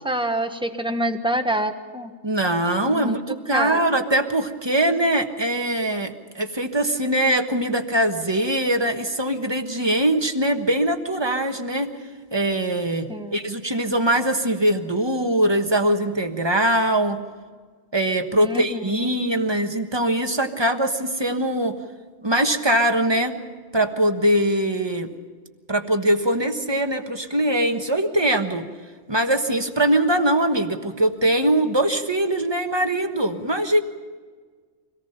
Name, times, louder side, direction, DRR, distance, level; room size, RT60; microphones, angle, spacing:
voice 1, 0.0-2.1 2.8-3.2 3.5-3.8 13.1-13.4 18.4-19.1, right 1 dB, 5° right, 6 dB, 1.2 m, -26 dB
voice 2, 2.2-11.9 12.3-17.2 17.9-21.8 22.2-23.4 23.7-25.1 25.7-28.7 29.1-33.8, right 1 dB, 20° right, 6 dB, 1.3 m, -22 dB
24.5 x 18.0 x 5.8 m, 1.5 s
omnidirectional pair, 1.2 m